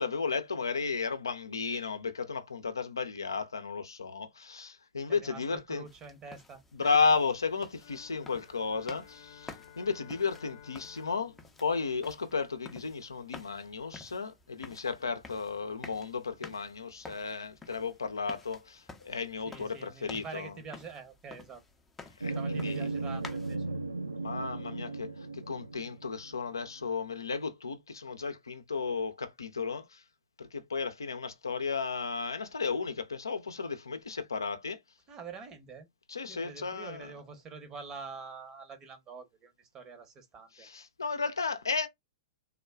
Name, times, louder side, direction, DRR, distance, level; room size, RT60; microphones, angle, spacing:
voice 1, 0.0-5.8 6.7-11.3 11.6-20.5 22.2-22.9 24.2-30.0 30.4-34.8 36.1-37.1 40.6-41.9, left 5 dB, 75° left, 0.5 m, -34 dB
voice 2, 5.1-7.0 19.5-21.6 22.3-23.7 35.1-35.9 36.3-40.7, right 5 dB, 25° right, 0.9 m, -46 dB
sound 1, 5.9-23.6, left 3 dB, 10° left, 0.5 m, -52 dB
sound 2, 7.7-12.4, left 9 dB, 40° left, 0.8 m, -55 dB
sound 3, 22.2-26.7, right 3 dB, 85° right, 0.5 m, -36 dB
3.5 x 2.2 x 2.3 m
figure-of-eight pair, 105°, 2 cm